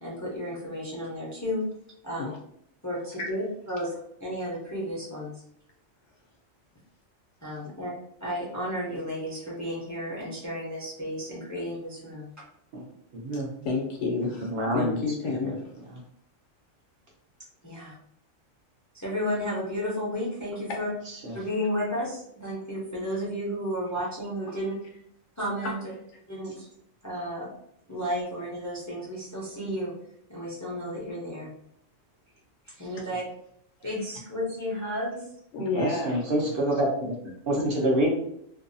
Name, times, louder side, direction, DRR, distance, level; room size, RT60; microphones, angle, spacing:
voice 1, 0.0-1.6 2.0-2.3 2.8-5.3 7.4-7.9 8.2-12.3 17.6-17.9 18.9-20.9 21.3-24.7 25.4-25.8 26.3-26.7 27.0-27.5 27.9-29.9 30.3-31.5 32.7-33.2 33.8-35.2, equal, 20° left, -6 dB, 0.4 m, -32 dB
voice 2, 13.6-15.7 20.7-20.8 35.5-36.8 37.6-37.7, left 3 dB, 70° left, 1 dB, 0.9 m, -31 dB
voice 3, 14.4-15.0 21.2-21.4 35.7-37.1 37.5-38.1, right 1 dB, 55° right, -2 dB, 0.7 m, -26 dB
2.6 x 2.2 x 2.6 m, 0.69 s
omnidirectional pair, 1.4 m